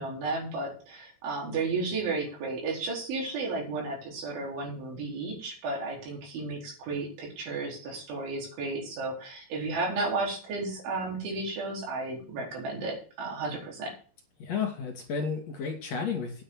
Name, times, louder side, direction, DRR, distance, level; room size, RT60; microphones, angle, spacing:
voice 1, 0.0-13.9, right 3 dB, 70° right, -1 dB, 6.6 m, -33 dB
voice 2, 14.4-16.4, left 6 dB, 40° left, 3 dB, 3.2 m, -32 dB
9.8 x 7.7 x 7.3 m, 0.40 s
omnidirectional pair, 5.7 m